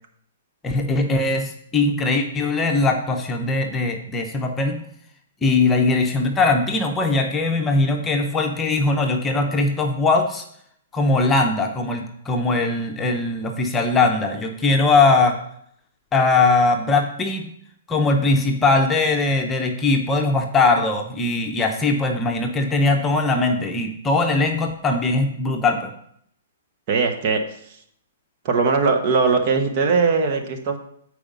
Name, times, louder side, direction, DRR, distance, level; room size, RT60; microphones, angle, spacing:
voice 1, 0.6-4.8 5.4-10.4 10.9-15.4 16.1-17.5 17.9-25.9, left 3 dB, 15° left, 3 dB, 1.0 m, -20 dB
voice 2, 26.9-27.4 27.7-27.8 28.4-30.8, right 4 dB, 45° right, 5 dB, 1.3 m, -20 dB
8.6 x 4.8 x 5.5 m, 0.68 s
hypercardioid pair, 140°, 0 cm